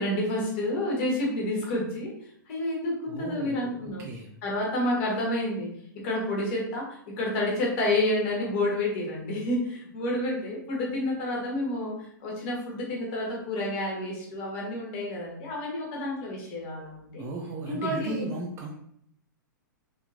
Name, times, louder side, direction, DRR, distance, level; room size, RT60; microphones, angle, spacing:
voice 1, 0.0-2.1 2.5-4.1 4.4-5.7 6.0-6.9 7.2-11.9 12.2-17.2 17.7-18.2, left 1 dB, 35° left, -2 dB, 1.2 m, -29 dB
voice 2, 3.1-4.3 17.2-18.8, right 2 dB, 20° right, 0 dB, 0.4 m, -36 dB
3.2 x 2.9 x 2.5 m, 0.69 s
figure-of-eight pair, 110°, 11 cm